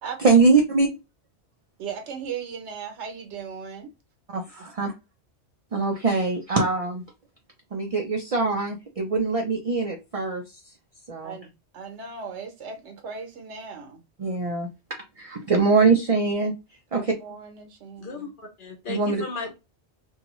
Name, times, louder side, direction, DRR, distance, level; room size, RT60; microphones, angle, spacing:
voice 1, 0.2-0.9 4.3-4.9 5.7-7.0 7.7-10.8 11.1-11.3 14.2-14.7 15.2-17.1 18.9-19.2, right 4 dB, 55° right, 0.4 m, -23 dB
voice 2, 1.8-3.9 11.2-14.0 16.9-18.3, right 6 dB, 80° right, 1.1 m, -37 dB
voice 3, 18.0-19.6, left 4 dB, 55° left, 0.8 m, -35 dB
2.6 x 2.3 x 3.0 m
omnidirectional pair, 1.2 m